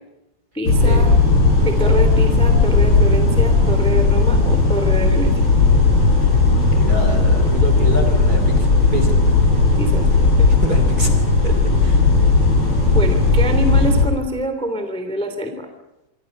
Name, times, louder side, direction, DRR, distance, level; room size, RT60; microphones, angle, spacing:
voice 1, 0.5-1.1 1.6-5.3 9.8-10.5 12.9-15.7, equal, ahead, 6 dB, 1.5 m, -25 dB
sound 1, 0.6-14.0, left 3 dB, 25° left, 7.7 m, -15 dB
voice 2, 6.6-9.2 10.6-11.1 11.4-11.5 11.8-12.0, right 1 dB, 25° right, 5 dB, 2.5 m, -26 dB
27.0 x 25.0 x 5.4 m, 0.95 s
omnidirectional pair, 5.6 m